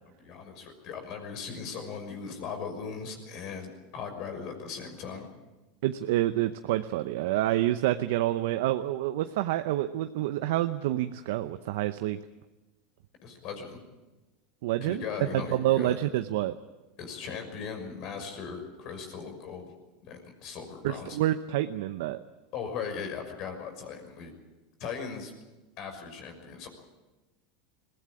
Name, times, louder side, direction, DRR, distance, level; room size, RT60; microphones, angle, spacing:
voice 1, 0.2-5.3 13.2-13.8 14.8-16.0 17.0-19.7 20.0-21.2 22.5-24.3 24.8-25.3 25.8-26.7, left 6 dB, 55° left, 6 dB, 6.0 m, -38 dB
voice 2, 5.8-12.2 14.6-15.0 15.3-16.6 20.8-22.2, right 14 dB, 75° right, 9 dB, 0.8 m, -28 dB
21.5 x 17.0 x 8.6 m, 1.1 s
supercardioid pair, 115°, 0 cm